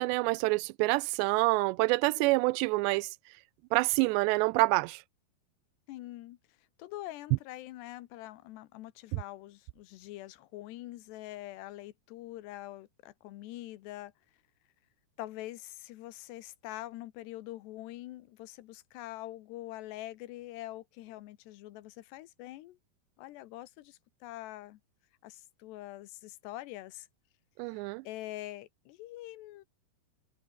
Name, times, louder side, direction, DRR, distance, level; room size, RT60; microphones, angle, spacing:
voice 1, 0.0-3.1 3.7-5.0 9.1-9.2 27.6-28.0, right 24 dB, 85° right, 2.7 m, -27 dB
voice 2, 5.9-6.4 6.8-14.1 15.2-22.8 23.2-24.8 25.2-27.1 28.0-29.6, left 16 dB, 80° left, 3.1 m, -44 dB
omnidirectional pair, 4.9 m